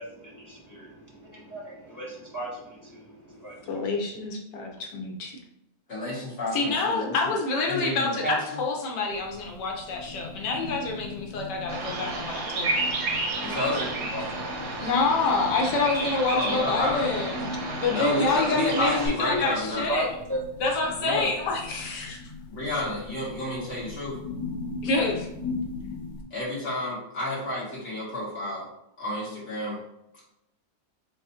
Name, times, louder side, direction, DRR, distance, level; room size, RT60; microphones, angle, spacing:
voice 1, 0.0-3.9 4.7-4.8 13.5-14.4 19.3-19.4 19.7-20.4, equal, 15° left, -5 dB, 0.8 m, -36 dB
voice 2, 3.7-5.3 6.5-12.8 14.8-17.4 17.8-20.1 20.6-22.2 24.8-25.3, left 3 dB, 90° left, 0 dB, 1.6 m, -27 dB
voice 3, 5.9-7.3 7.7-8.6 13.4-13.9 16.3-17.0 17.9-19.9 21.0-21.3 22.5-24.2 26.3-28.7 29.0-29.8, left 1 dB, 45° left, -7 dB, 2.1 m, -30 dB
sound 1, 9.1-26.2, left 3 dB, 65° left, 1.2 m, -39 dB
Bird vocalization bird call bird song, 11.7-19.1, right 3 dB, 90° right, 1.6 m, -31 dB
4.6 x 3.7 x 2.8 m, 0.84 s
omnidirectional pair, 1.8 m